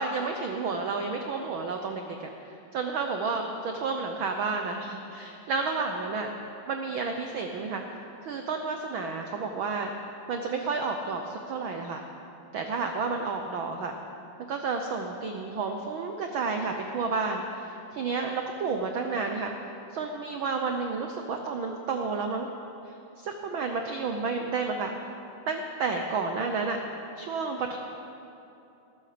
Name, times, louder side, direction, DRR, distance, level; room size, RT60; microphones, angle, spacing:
voice 1, 0.0-2.3 2.7-6.3 6.7-7.8 8.2-9.9 10.3-12.0 12.5-14.0 14.5-19.5 19.9-22.5 23.2-24.9 25.5-26.8 27.2-27.8, right 4 dB, 85° right, 4 dB, 1.1 m, -31 dB
20.0 x 13.0 x 5.0 m, 2.9 s
omnidirectional pair, 3.4 m